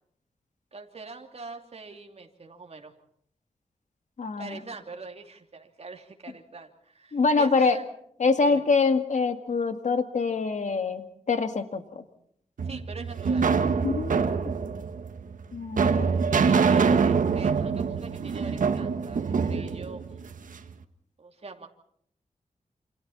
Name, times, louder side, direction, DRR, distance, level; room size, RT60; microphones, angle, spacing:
voice 1, 0.7-2.9 4.4-7.9 8.4-8.6 12.6-13.5 15.8-20.3 21.2-21.7, right 4 dB, 50° right, 3 dB, 2.9 m, -42 dB
voice 2, 4.2-4.5 7.1-7.8 8.2-12.0 13.8-14.5 15.5-16.2, left 4 dB, 65° left, 8 dB, 2.1 m, -25 dB
sound 1, 12.6-20.7, right 5 dB, 80° right, 1.5 m, -25 dB
28.5 x 26.5 x 4.3 m, 0.66 s
wide cardioid pair, 95°, 13 cm